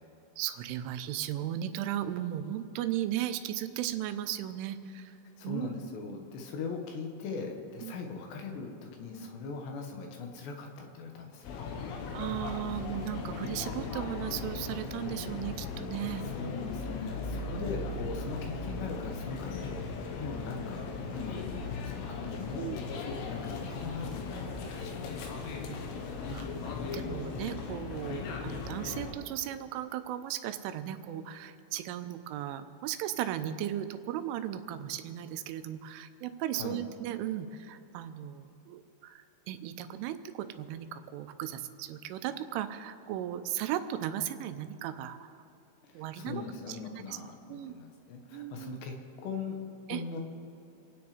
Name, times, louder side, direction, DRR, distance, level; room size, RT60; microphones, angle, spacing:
voice 1, 0.4-5.2 5.4-5.7 6.1-6.2 7.8-8.0 12.1-16.3 17.6-17.7 22.6-22.9 25.7-25.8 26.3-45.3 45.9-46.8 47.1-47.2 47.5-47.7 48.3-48.8 49.9-50.0, right 11 dB, 85° right, 10 dB, 3.2 m, -36 dB
voice 2, 5.4-11.5 16.2-20.9 21.1-22.7 23.0-25.5 36.6-36.8 45.8-49.6 49.9-50.2, left 4 dB, 70° left, 2 dB, 3.3 m, -40 dB
sound 1, 11.4-29.1, left 4 dB, 85° left, 3.9 m, -38 dB
27.0 x 9.6 x 5.0 m, 2.9 s
omnidirectional pair, 5.5 m